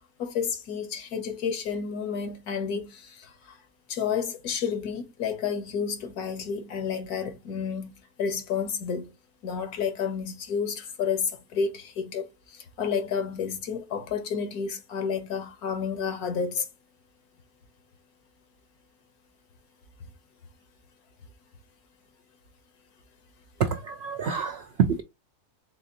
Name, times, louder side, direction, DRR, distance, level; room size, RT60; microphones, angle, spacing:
voice 1, 0.2-3.6 3.9-7.9 8.2-9.1 9.4-16.7, left 6 dB, 75° left, 1.5 m, -30 dB
voice 2, 23.6-25.0, right 7 dB, 70° right, 0.6 m, -27 dB
4.2 x 3.8 x 2.7 m
omnidirectional pair, 1.6 m